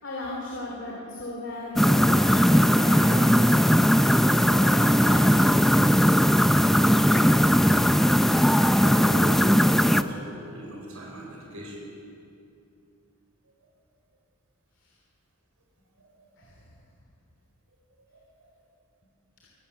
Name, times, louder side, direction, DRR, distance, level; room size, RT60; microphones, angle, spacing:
voice 1, 0.0-3.8 4.5-5.3 16.4-16.6, left 1 dB, 55° left, -2 dB, 3.2 m, -36 dB
sound 1, 1.8-10.0, equal, ahead, 0.4 m, -19 dB
voice 2, 6.8-7.8 8.1-11.8 16.0-16.5 18.1-18.5, right 1 dB, 75° right, -2 dB, 5.3 m, -40 dB
25.0 x 13.0 x 9.0 m, 2.6 s
head